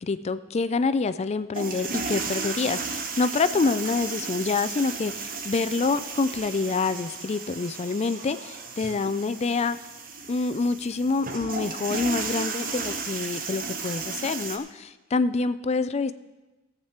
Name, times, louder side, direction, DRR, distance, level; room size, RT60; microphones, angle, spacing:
voice 1, 0.0-9.8 10.3-16.1, left 4 dB, 30° left, 13 dB, 0.4 m, -27 dB
sound 1, 1.5-14.6, right 4 dB, 45° right, 1.0 m, -34 dB
16.0 x 8.1 x 4.4 m, 1.1 s
head